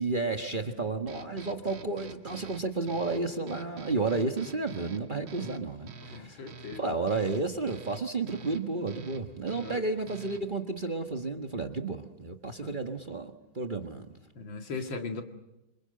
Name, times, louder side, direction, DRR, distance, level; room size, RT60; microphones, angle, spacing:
voice 1, 0.0-6.4 6.8-14.1, right 3 dB, 30° right, 4 dB, 1.3 m, -32 dB
sound 1, 1.1-10.6, right 4 dB, 90° right, 2.4 m, -48 dB
voice 2, 6.1-7.1 9.5-9.8 12.6-12.7 14.3-15.2, left 4 dB, 70° left, 5 dB, 2.7 m, -38 dB
27.5 x 26.0 x 7.7 m, 0.95 s
omnidirectional pair, 2.2 m